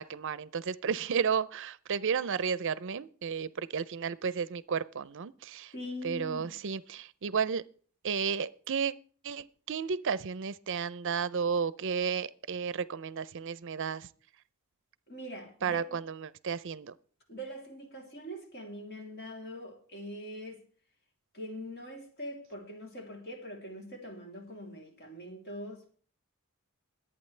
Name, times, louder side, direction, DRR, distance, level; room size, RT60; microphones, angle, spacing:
voice 1, 0.0-5.7 6.0-7.6 8.0-8.9 9.2-14.1 15.6-16.9, right 6 dB, 60° right, 0.5 m, -33 dB
voice 2, 5.7-6.5 15.1-15.8 17.3-20.6 21.3-26.0, equal, 50° left, 3.1 m, -43 dB
22.0 x 8.7 x 3.3 m
head